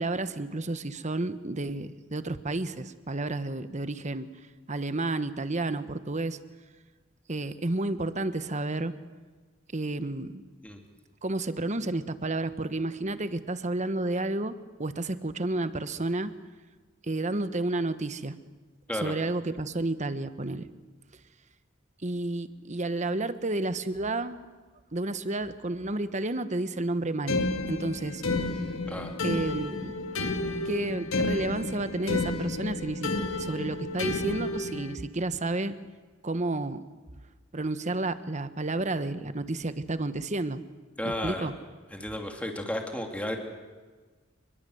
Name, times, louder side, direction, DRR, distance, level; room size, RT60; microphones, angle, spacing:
voice 1, 0.0-4.3 4.7-6.4 7.3-9.0 9.7-10.4 11.2-16.3 17.0-18.3 18.9-20.7 22.0-24.5 24.9-27.4 27.7-28.2 29.2-29.9 30.6-33.1 33.4-35.7 36.2-36.8 37.5-40.6 41.0-41.5, right 2 dB, 35° right, 12 dB, 1.2 m, -31 dB
sound 1, 27.3-35.0, left 2 dB, 75° left, 2.1 m, -31 dB
voice 2, 41.0-41.5 41.9-43.4, left 1 dB, 5° left, 3 dB, 2.6 m, -33 dB
28.5 x 21.5 x 7.9 m, 1.4 s
head